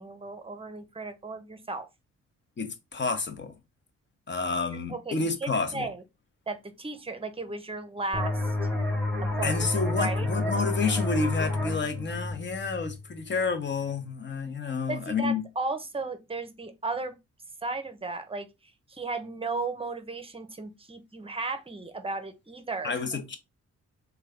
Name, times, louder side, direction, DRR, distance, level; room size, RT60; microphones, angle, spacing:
voice 1, 0.0-1.9 4.9-6.0 6.5-8.5 9.3-9.6 10.0-10.3 14.9-17.1 17.6-18.5 18.9-22.9, right 3 dB, 20° right, 0.7 m, -35 dB
voice 2, 2.6-3.5 4.3-5.9 9.4-15.4 22.8-23.4, left 4 dB, 35° left, 0.9 m, -30 dB
sound 1, 8.1-13.5, left 2 dB, 5° left, 1.0 m, -30 dB
3.2 x 2.3 x 3.5 m
supercardioid pair, 60°, 30 cm